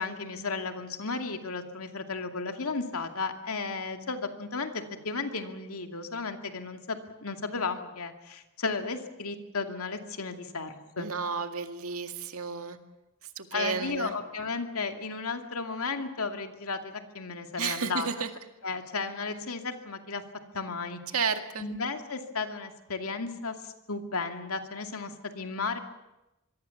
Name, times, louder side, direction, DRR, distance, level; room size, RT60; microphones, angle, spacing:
voice 1, 0.0-11.1 13.5-18.1 18.6-20.2 20.5-21.0 21.6-23.6 23.9-25.8, left 4 dB, 85° left, 5 dB, 2.4 m, -34 dB
voice 2, 11.0-12.8 13.4-14.1 17.6-18.3 21.1-21.7, right 5 dB, 80° right, 6 dB, 2.0 m, -32 dB
25.5 x 22.0 x 7.1 m, 0.95 s
head